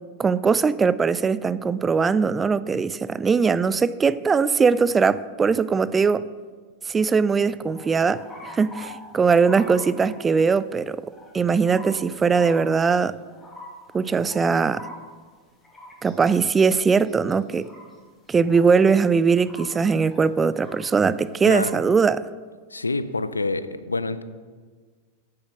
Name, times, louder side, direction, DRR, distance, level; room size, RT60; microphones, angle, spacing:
voice 1, 0.2-6.3 6.9-11.0 11.3-13.1 13.9-14.9 16.0-17.7 18.3-22.2, right 5 dB, 15° right, 17 dB, 0.3 m, -20 dB
sound 1, 7.7-10.5 11.1-11.3 11.6-12.1 12.4-18.9 19.2-20.9 21.3-21.8, left 1 dB, 10° left, 2.2 m, -44 dB
voice 2, 21.4-21.8 22.7-24.2, left 3 dB, 80° left, 14 dB, 0.5 m, -27 dB
8.9 x 7.1 x 6.5 m, 1.5 s
figure-of-eight pair, 90°, 0 cm